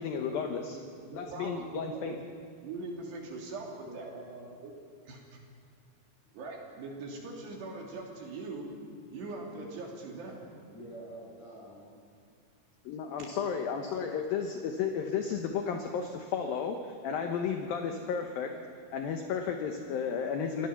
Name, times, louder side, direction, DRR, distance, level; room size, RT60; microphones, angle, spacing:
voice 1, 0.0-0.8 1.1-2.1 12.9-18.6 18.9-20.7, left 6 dB, 70° left, 4 dB, 2.4 m, -33 dB
voice 2, 0.7-2.2 2.6-4.1 4.6-4.7 5.1-5.4 6.3-8.7 9.1-10.4 13.2-13.3, right 3 dB, 70° right, -1 dB, 5.0 m, -41 dB
voice 3, 3.8-4.5 10.7-12.0 13.9-14.1, right 1 dB, 40° left, -4 dB, 8.1 m, -47 dB
28.0 x 17.5 x 6.0 m, 2.3 s
omnidirectional pair, 5.1 m